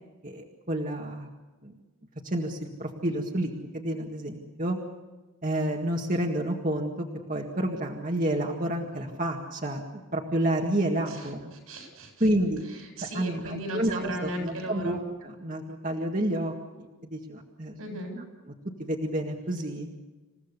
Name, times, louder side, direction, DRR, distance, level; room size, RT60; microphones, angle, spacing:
voice 1, 0.2-1.3 1.6-1.7 2.2-4.8 5.4-9.8 10.1-11.5 12.2-12.6 13.1-16.5 17.0-17.8 18.8-19.9, right 1 dB, 35° right, 0 dB, 1.9 m, -29 dB
voice 2, 11.7-12.2 12.7-15.0 17.8-18.2, right 1 dB, 85° right, 3 dB, 7.9 m, -36 dB
28.0 x 16.5 x 6.9 m, 1.2 s
head